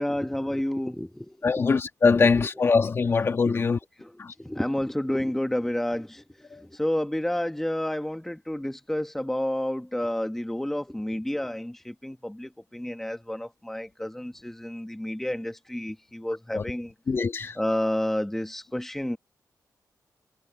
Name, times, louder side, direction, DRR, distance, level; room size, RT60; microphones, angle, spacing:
voice 1, 0.0-1.6 2.4-2.5 3.5-3.6 4.0-4.1 4.4-16.9 17.6-19.2, left 1 dB, 5° left, 1.2 m, -30 dB
voice 2, 1.4-3.8 4.2-4.3 16.5-16.6 17.1-17.6, left 4 dB, 40° left, 1.5 m, -22 dB
wide cardioid pair, 155°, 7 cm